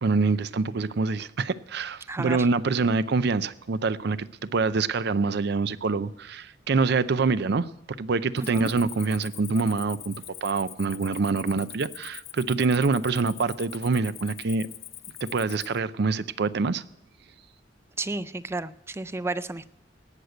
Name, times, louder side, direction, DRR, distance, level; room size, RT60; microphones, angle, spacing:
voice 1, 0.0-10.1 10.4-14.7 15.2-16.8, right 4 dB, 65° right, 16 dB, 0.5 m, -25 dB
voice 2, 2.1-2.5 8.4-8.7 18.0-19.7, right 2 dB, 15° right, 15 dB, 0.4 m, -32 dB
Cricket, 8.4-15.8, left 11 dB, 40° left, 0.6 m, -43 dB
17.5 x 6.6 x 7.8 m, 0.87 s
head